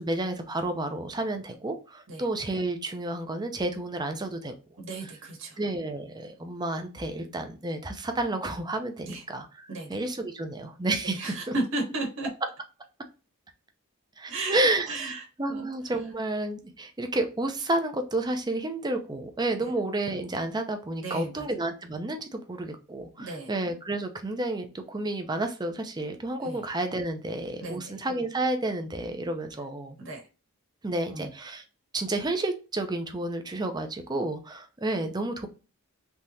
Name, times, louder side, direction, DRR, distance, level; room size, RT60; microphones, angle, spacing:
voice 1, 0.0-4.5 5.0-5.1 5.6-11.5 14.2-30.0 30.8-31.6 31.9-35.5, right 2 dB, 20° right, 6 dB, 0.5 m, -31 dB
voice 2, 4.8-5.6 9.1-9.2 9.7-10.0 11.0-12.3 14.3-15.7 19.6-19.7 21.0-21.4 23.2-23.5 26.4-26.6 27.6-27.8 30.0-30.2 31.1-31.3, right 2 dB, 60° right, 0 dB, 1.3 m, -34 dB
3.5 x 2.9 x 2.7 m, 0.33 s
head